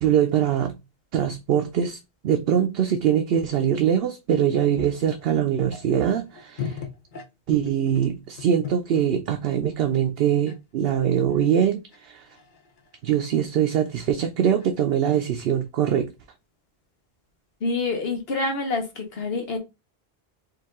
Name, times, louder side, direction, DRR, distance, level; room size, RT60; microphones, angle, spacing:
voice 1, 0.0-0.7 1.1-6.8 7.5-12.3 13.0-16.1, right 9 dB, 75° right, 0.8 m, -23 dB
sound 1, 4.4-9.1 9.6-9.8 10.5-10.6 10.8-15.7, left 6 dB, 55° left, 0.9 m, -40 dB
voice 2, 17.6-19.6, left 3 dB, 75° left, 1.2 m, -27 dB
4.7 x 2.5 x 3.5 m
omnidirectional pair, 1.0 m